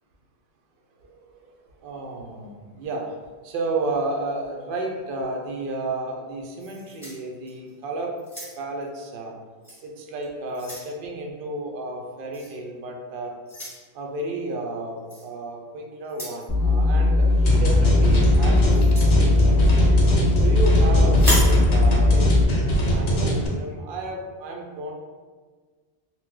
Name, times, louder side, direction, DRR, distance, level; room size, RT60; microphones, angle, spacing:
voice 1, 1.1-3.1 3.4-8.2 8.6-9.3 9.8-13.3 13.9-20.0 20.4-22.4 22.9-24.9, right 2 dB, 60° right, 0 dB, 0.7 m, -32 dB
sound 1, 6.6-7.7 8.2-8.8 9.6-9.8 10.2-10.9 12.3-12.6 13.5-13.8 15.1-15.3 16.0-16.5 18.7-19.1 21.1-21.6, equal, 5° right, 0.8 m, -31 dB
sound 2, 16.5-22.4, left 2 dB, 25° left, 0.8 m, -19 dB
sound 3, 17.5-23.5, right 1 dB, 75° left, 0.9 m, -22 dB
2.8 x 2.1 x 3.5 m, 1.5 s
omnidirectional pair, 1.1 m